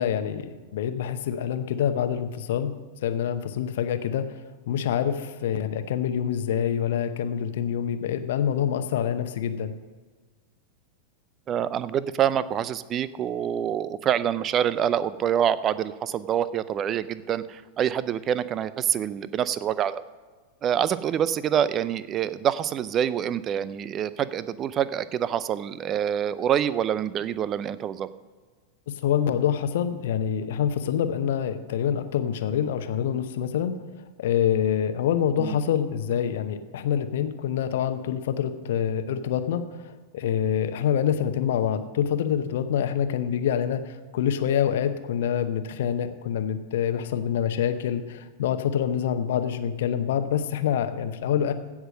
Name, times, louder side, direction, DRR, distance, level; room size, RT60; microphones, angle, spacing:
voice 1, 0.0-2.7 3.0-4.4 4.7-9.7 28.9-33.8 34.2-51.5, left 9 dB, 55° left, 10 dB, 0.9 m, -26 dB
voice 2, 11.5-20.0 20.6-28.1 35.4-35.6, right 9 dB, 30° right, 16 dB, 0.5 m, -26 dB
16.0 x 6.1 x 6.3 m, 1.4 s
figure-of-eight pair, 90°, 0 cm